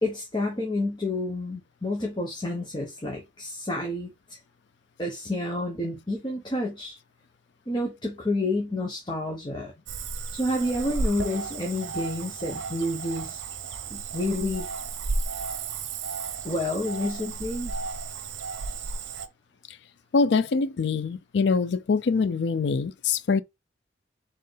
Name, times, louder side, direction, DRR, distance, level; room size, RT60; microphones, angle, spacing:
voice 1, 0.0-4.4 5.0-7.0 7.7-9.7 10.3-13.4 13.9-14.7 16.4-17.7, left 1 dB, 25° left, 1.0 m, -29 dB
Cricket / Frog, 9.9-19.3, right 4 dB, 85° right, 0.7 m, -33 dB
voice 2, 20.1-23.4, left 4 dB, 65° left, 0.4 m, -24 dB
4.4 x 3.6 x 3.3 m
head